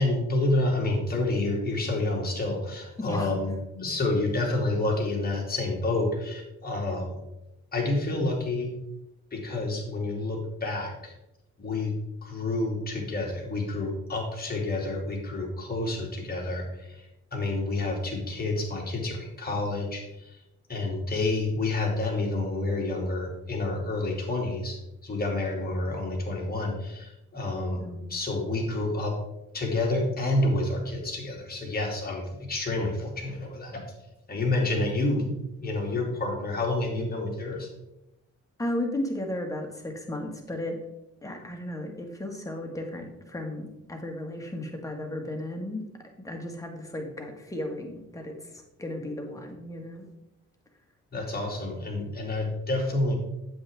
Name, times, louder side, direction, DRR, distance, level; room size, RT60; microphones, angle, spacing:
voice 1, 0.0-7.1 7.7-8.7 9.3-11.1 11.6-11.9 12.2-20.4 20.7-24.8 25.0-27.8 28.1-29.1 29.5-33.8 34.3-35.3 35.6-37.7 51.1-53.1, left 2 dB, 30° left, -1 dB, 2.8 m, -29 dB
voice 2, 3.0-3.3 27.8-28.1 38.6-40.8 41.2-50.1, left 1 dB, 10° left, 2 dB, 1.8 m, -35 dB
8.8 x 7.7 x 3.7 m, 0.90 s
cardioid pair, 90°, 30 cm